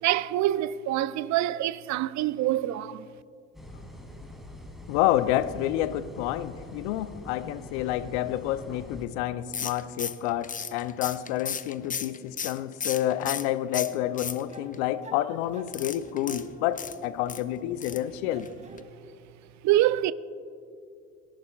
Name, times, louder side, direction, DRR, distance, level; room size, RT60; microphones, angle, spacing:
voice 1, 0.0-3.1 19.6-20.1, right 14 dB, 50° right, 0.6 m, -25 dB
sound 1, 3.5-9.1, left 1 dB, ahead, 2.7 m, -44 dB
voice 2, 4.9-18.5, left 13 dB, 70° left, 0.7 m, -29 dB
sound 2, 9.5-13.5 13.7-14.7 15.7-17.4 17.8-18.1 18.4-18.5 18.8-18.9, left 7 dB, 20° left, 0.6 m, -35 dB
sound 3, 13.7-17.4 17.8-18.9, right 1 dB, 20° right, 2.2 m, -48 dB
23.0 x 11.5 x 2.4 m
hypercardioid pair, 65°, 36 cm